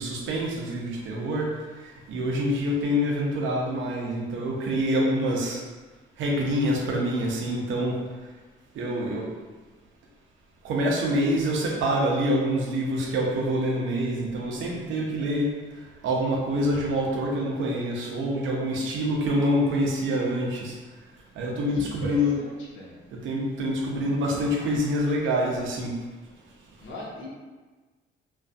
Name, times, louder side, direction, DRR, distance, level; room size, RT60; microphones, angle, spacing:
voice 1, 0.0-5.6 6.2-8.3 8.7-9.3 10.6-20.8 21.3-22.4 23.1-26.0, equal, 80° right, -1 dB, 0.6 m, -26 dB
voice 2, 21.8-23.0 26.8-27.3, left 1 dB, 80° left, -4 dB, 0.8 m, -38 dB
2.5 x 2.3 x 2.3 m, 1.3 s
cardioid pair, 90°, 20 cm